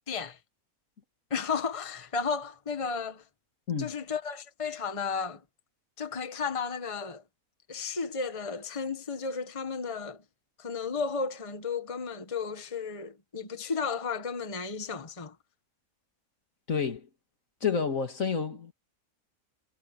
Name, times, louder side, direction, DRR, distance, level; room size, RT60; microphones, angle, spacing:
voice 1, 0.1-0.4 1.3-3.2 3.8-5.4 6.0-7.2 7.7-10.2 10.6-15.3, left 5 dB, 25° left, 1.4 m, -33 dB
voice 2, 16.7-17.1 17.6-18.7, left 6 dB, 65° left, 2.6 m, -29 dB
omnidirectional pair, 1.5 m